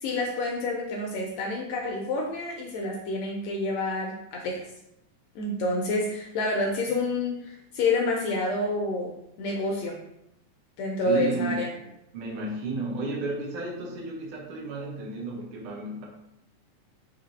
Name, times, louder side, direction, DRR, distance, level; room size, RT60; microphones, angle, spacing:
voice 1, 0.0-4.7 5.3-10.0 10.8-11.7, left 2 dB, 80° left, 0 dB, 1.6 m, -28 dB
voice 2, 11.0-11.7 12.1-16.1, right 2 dB, 75° right, -1 dB, 1.2 m, -32 dB
4.9 x 2.7 x 4.0 m, 0.81 s
omnidirectional pair, 3.5 m